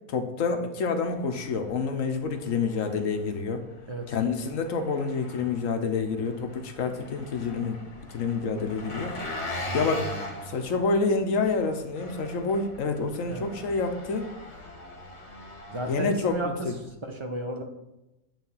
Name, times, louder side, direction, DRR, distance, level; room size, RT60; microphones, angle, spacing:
voice 1, 0.1-3.6 4.1-7.8 8.1-9.2 9.7-10.1 10.4-14.3 15.9-16.7, left 4 dB, 60° left, 6 dB, 1.1 m, -28 dB
Engine, 1.0-16.8, left 1 dB, 90° left, 2.2 m, -41 dB
voice 2, 15.7-16.5 17.0-17.6, right 1 dB, 30° right, 4 dB, 0.6 m, -33 dB
9.0 x 3.3 x 5.6 m, 0.93 s
omnidirectional pair, 1.7 m